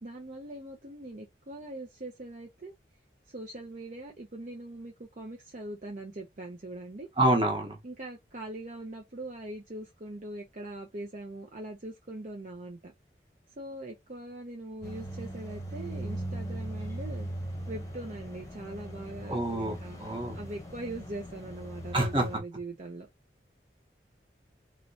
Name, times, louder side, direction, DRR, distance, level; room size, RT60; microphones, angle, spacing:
voice 1, 0.0-2.7 3.3-7.1 7.8-12.9 13.6-17.3 17.7-20.0 20.3-23.1, right 2 dB, 45° right, 0.7 m, -41 dB
voice 2, 7.2-7.8 19.3-20.4 21.9-22.3, right 1 dB, 30° right, 1.1 m, -27 dB
sound 1, 14.8-22.4, right 1 dB, 20° left, 0.9 m, -39 dB
3.0 x 3.0 x 2.7 m
head